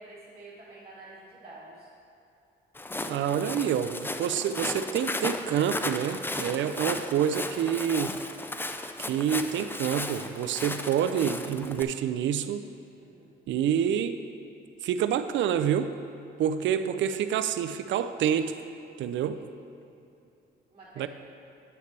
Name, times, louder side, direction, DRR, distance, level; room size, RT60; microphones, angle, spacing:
voice 1, 0.0-1.9 13.0-13.3 16.3-16.4 19.3-19.5 20.7-21.1, right 2 dB, 25° right, -8 dB, 1.9 m, -49 dB
Walk footsteps, 2.8-11.8, left 2 dB, 10° left, 0.4 m, -35 dB
voice 2, 3.1-8.1 9.1-12.6 13.5-14.1 14.8-15.9 16.4-18.6 19.0-19.3 21.0-21.1, right 9 dB, 70° right, 10 dB, 0.5 m, -27 dB
9.7 x 8.2 x 3.3 m, 2.7 s
cardioid pair, 90°, 20 cm